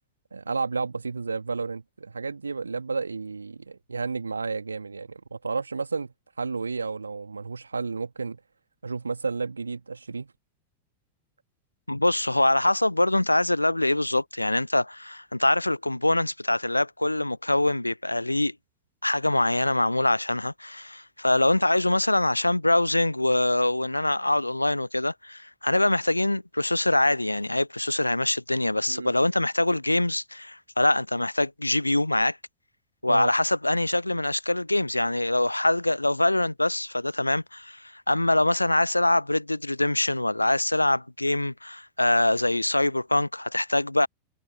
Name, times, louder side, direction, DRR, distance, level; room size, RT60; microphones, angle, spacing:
voice 1, 0.3-8.4 8.8-10.3 28.9-29.1 33.1-33.3, right 4 dB, 75° right, 2.3 m, -32 dB
voice 2, 11.9-18.5 19.0-32.4 33.0-44.1, left 1 dB, 85° left, 0.4 m, -24 dB
figure-of-eight pair, 90°, 0 cm